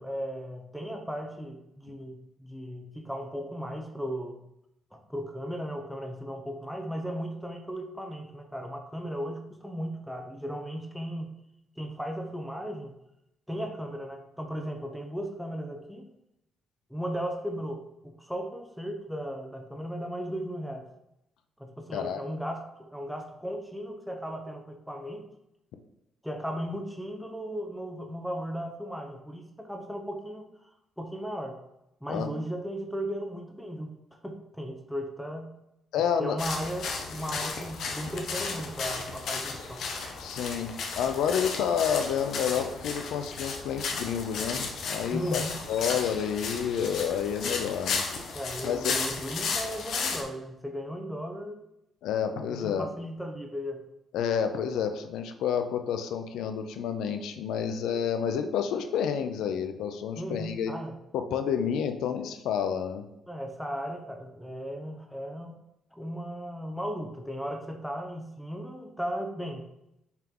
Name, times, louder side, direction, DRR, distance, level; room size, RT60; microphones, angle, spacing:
voice 1, 0.0-4.4 4.9-11.3 11.8-12.9 13.5-16.0 16.9-20.8 21.6-25.3 26.2-30.7 31.0-31.6 32.0-33.9 34.2-35.5 36.2-39.8 45.1-45.6 48.3-51.6 52.5-53.8 60.2-60.9 63.3-65.6 65.9-69.6, equal, ahead, 4 dB, 0.8 m, -36 dB
voice 2, 21.9-22.2 32.1-32.3 35.9-36.4 40.2-48.1 48.6-49.0 52.0-52.9 54.1-60.7 61.1-63.0, left 8 dB, 85° left, 8 dB, 0.6 m, -29 dB
sound 1, 36.4-50.2, left 4 dB, 70° left, 1.1 m, -34 dB
5.7 x 4.5 x 3.8 m, 0.84 s
cardioid pair, 90°, 0 cm